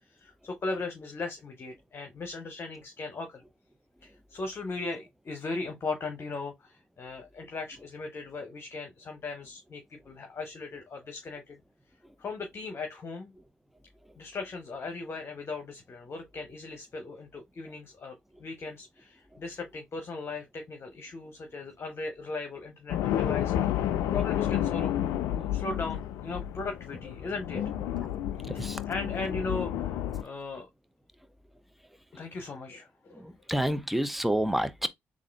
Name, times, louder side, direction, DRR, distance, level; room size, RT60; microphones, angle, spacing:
voice 1, 0.1-3.4 4.0-11.6 12.2-13.3 14.2-23.8 24.1-25.0 25.3-27.9 28.4-30.7 32.1-33.2, left 3 dB, 45° left, 1.0 m, -38 dB
sound 1, 22.9-30.2, left 11 dB, 75° left, 0.4 m, -30 dB
voice 2, 28.5-28.8 33.2-34.9, right 1 dB, ahead, 0.7 m, -29 dB
3.6 x 2.5 x 3.3 m
hypercardioid pair, 50°, 5 cm